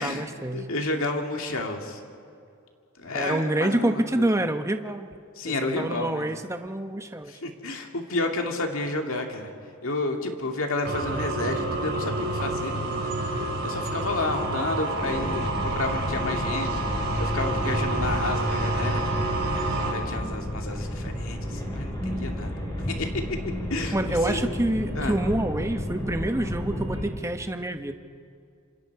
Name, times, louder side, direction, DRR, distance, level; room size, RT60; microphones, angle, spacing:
voice 1, 0.0-0.7 3.1-5.2 5.5-7.4 23.9-27.9, right 1 dB, 15° right, 7 dB, 0.9 m, -27 dB
voice 2, 0.5-2.0 3.0-4.3 5.4-6.3 7.3-9.5 9.8-13.1 13.6-19.1 19.8-22.5 22.9-23.4 23.7-24.5 25.0-25.2, left 2 dB, 65° left, 3 dB, 2.3 m, -31 dB
sound 1, 10.8-19.9, right 2 dB, 50° right, 4.8 m, -29 dB
sound 2, 15.0-27.1, equal, 20° left, 6.4 m, -31 dB
26.5 x 26.5 x 4.7 m, 2.4 s
head